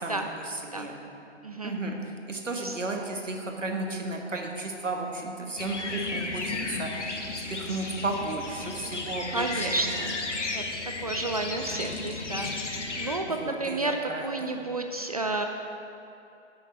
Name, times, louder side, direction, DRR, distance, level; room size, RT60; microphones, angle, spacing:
voice 1, 0.0-1.0 1.6-7.2 7.5-9.9 13.3-14.5, right 2 dB, 80° right, 2 dB, 1.4 m, -34 dB
voice 2, 1.4-1.8 2.6-2.8 9.3-10.2 10.5-10.6 11.0-15.4, right 2 dB, 35° right, 4 dB, 0.4 m, -31 dB
sound 1, 5.6-13.2, left 3 dB, 75° left, 1.1 m, -34 dB
8.8 x 6.4 x 6.6 m, 2.7 s
figure-of-eight pair, 130°, 37 cm